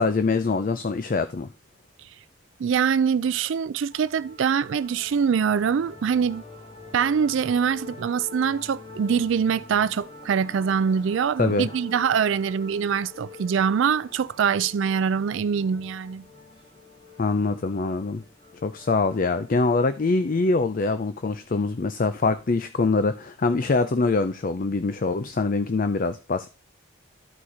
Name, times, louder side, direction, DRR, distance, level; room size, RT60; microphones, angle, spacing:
voice 1, 0.0-1.5 11.4-11.7 17.2-18.2 18.6-26.5, left 3 dB, 40° left, 0.4 m, -24 dB
voice 2, 2.6-6.4 6.9-16.2, right 7 dB, 65° right, 0.3 m, -24 dB
sound 1, 3.9-22.6, left 3 dB, 25° left, 1.7 m, -46 dB
13.0 x 4.3 x 4.9 m
head